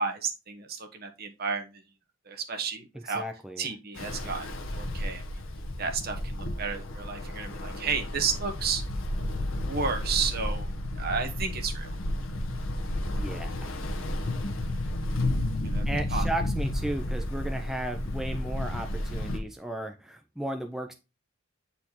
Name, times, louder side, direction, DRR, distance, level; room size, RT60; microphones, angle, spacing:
voice 1, 0.0-1.8 2.3-3.2 3.6-4.5 4.7-5.2 5.8-8.8 9.5-10.7 11.0-12.0 15.6-15.8 16.1-16.2, right 5 dB, 50° right, 1.0 m, -32 dB
voice 2, 3.1-3.7 13.1-13.8 15.9-20.9, right 1 dB, ahead, 0.5 m, -35 dB
Ocean, 3.9-19.4, left 1 dB, 75° left, 1.0 m, -32 dB
8.2 x 4.2 x 2.8 m
head